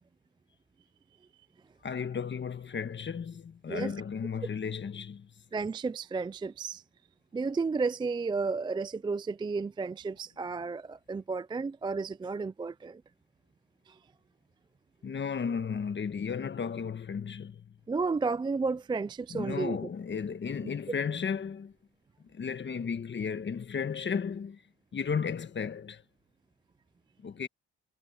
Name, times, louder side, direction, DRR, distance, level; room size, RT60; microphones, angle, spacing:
voice 1, 1.8-5.3 15.0-17.7 19.3-21.7 22.3-24.6 24.9-26.0 27.2-27.5, left 6 dB, 40° left, 1.4 m, -34 dB
voice 2, 5.5-6.8 7.3-13.0 13.9-14.0 17.9-19.8, right 4 dB, 15° right, 0.3 m, -32 dB
cardioid pair, 90°, 30 cm